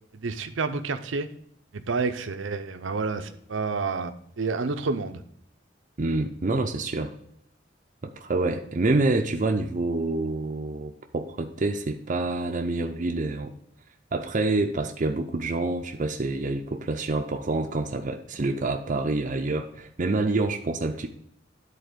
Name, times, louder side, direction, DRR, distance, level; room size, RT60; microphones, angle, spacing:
voice 1, 0.2-1.3 1.7-5.2, right 4 dB, 80° right, 9 dB, 0.7 m, -29 dB
voice 2, 6.0-7.1 8.0-13.5 14.1-21.1, right 2 dB, 40° right, 3 dB, 0.5 m, -27 dB
10.5 x 4.1 x 5.1 m, 0.71 s
head